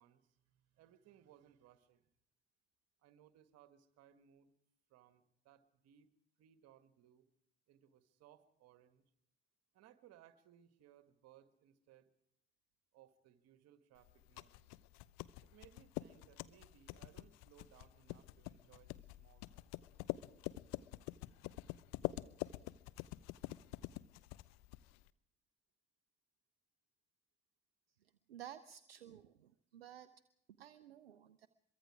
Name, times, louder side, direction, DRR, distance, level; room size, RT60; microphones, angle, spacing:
voice 1, 0.0-2.1 3.0-4.5 4.9-6.1 6.4-7.3 7.7-9.1 9.7-12.1 12.9-14.7 15.4-19.7, right 11 dB, 55° right, 10 dB, 1.7 m, -65 dB
sound 1, 14.0-25.1, left 18 dB, 60° left, 0.8 m, -46 dB
voice 2, 28.3-30.1 30.6-31.5, right 11 dB, 80° right, 13 dB, 0.7 m, -54 dB
24.0 x 23.0 x 4.9 m, 0.78 s
figure-of-eight pair, 50°, 30 cm